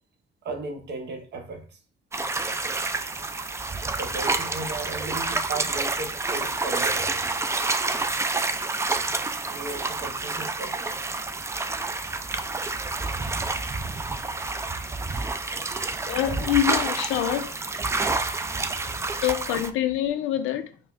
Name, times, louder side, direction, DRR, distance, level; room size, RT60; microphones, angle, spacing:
voice 1, 0.4-1.7 2.9-7.2 8.4-9.2 9.5-10.9 18.4-18.6 19.0-19.2, right 3 dB, 60° right, 0.9 m, -37 dB
sound 1, 2.1-19.7, right 3 dB, 15° right, 0.3 m, -28 dB
voice 2, 16.1-17.6 19.2-20.8, left 12 dB, 90° left, 0.5 m, -25 dB
5.4 x 2.1 x 2.4 m
cardioid pair, 90°, 20 cm